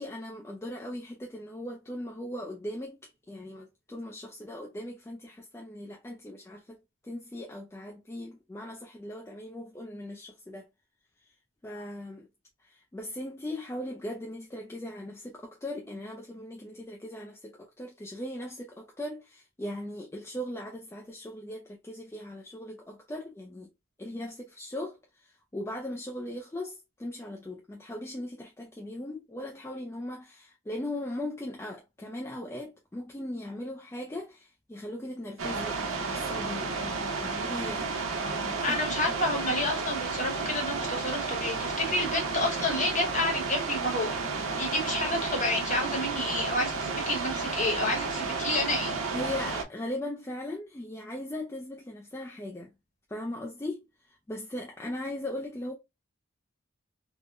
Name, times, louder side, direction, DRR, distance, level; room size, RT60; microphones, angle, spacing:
voice 1, 0.0-6.8 7.0-10.7 11.2-11.3 11.6-12.3 12.6-23.7 24.0-39.2 49.1-52.7 53.1-55.7, left 1 dB, 15° left, 0.3 m, -39 dB
sound 1, 35.4-49.6, right 4 dB, 85° right, 0.8 m, -32 dB
voice 2, 38.6-48.9, left 2 dB, 35° left, 1.0 m, -30 dB
3.5 x 2.1 x 2.4 m
head